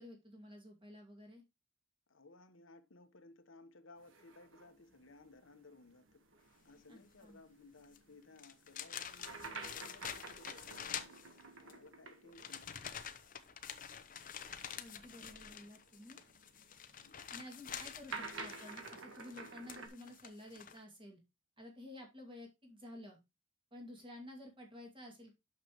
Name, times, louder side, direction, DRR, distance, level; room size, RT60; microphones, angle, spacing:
voice 1, 0.0-1.4 6.9-7.4 14.8-16.2 17.3-21.2 21.6-23.2 23.7-25.3, left 1 dB, 25° right, 2.3 m, -52 dB
voice 2, 2.1-6.2 6.6-11.1 11.6-12.9 17.0-17.3, left 3 dB, 80° left, 1.1 m, -59 dB
sound 1, 4.0-13.0 13.2-13.3 14.3-19.9, right 4 dB, 80° right, 1.5 m, -51 dB
sound 2, 7.8-8.0 8.4-11.7 12.3-20.8, left 8 dB, 45° left, 0.8 m, -47 dB
8.9 x 6.8 x 3.1 m
head